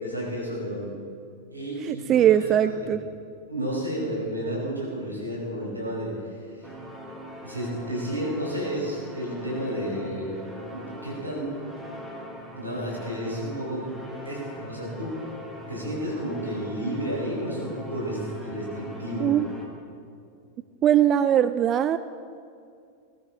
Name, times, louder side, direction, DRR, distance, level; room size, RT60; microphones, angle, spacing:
voice 1, 0.0-1.0 1.5-2.8 3.5-6.1 7.4-10.4 10.7-11.5 12.5-13.9 14.2-15.2 15.7-19.3, equal, 85° right, -3 dB, 4.7 m, -31 dB
voice 2, 1.8-3.0 19.2-19.5 20.8-22.0, right 10 dB, 30° right, 13 dB, 0.4 m, -20 dB
sound 1, 6.6-19.7, equal, 5° right, 2.5 m, -41 dB
20.0 x 14.5 x 3.8 m, 2.4 s
figure-of-eight pair, 90°, 0 cm